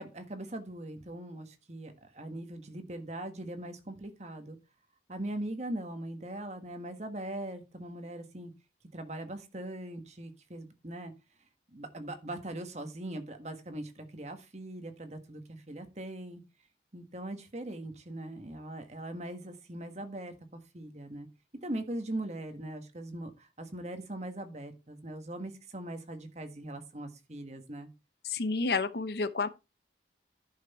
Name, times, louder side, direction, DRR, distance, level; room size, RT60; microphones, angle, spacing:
voice 1, 0.0-4.6 5.1-8.5 8.9-11.1 11.7-16.4 16.9-21.3 21.6-27.9, right 1 dB, 40° right, 1.5 m, -40 dB
voice 2, 28.2-29.5, left 4 dB, 65° left, 0.8 m, -30 dB
11.0 x 5.9 x 4.2 m
head